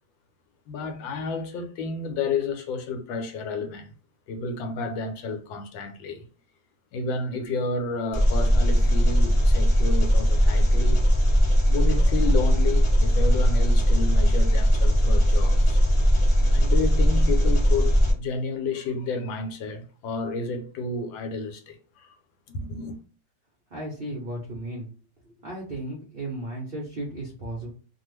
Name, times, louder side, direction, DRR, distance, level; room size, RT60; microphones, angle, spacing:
voice 1, 0.7-3.9 4.3-6.3 6.9-11.0 11.7-15.8 16.5-22.2 22.5-23.0, left 3 dB, 85° left, 1.4 m, -31 dB
Engine, 8.1-18.1, equal, 45° left, 0.3 m, -19 dB
voice 2, 23.7-24.9 25.3-27.7, right 1 dB, 60° right, 0.5 m, -35 dB
3.0 x 2.3 x 3.1 m
omnidirectional pair, 2.1 m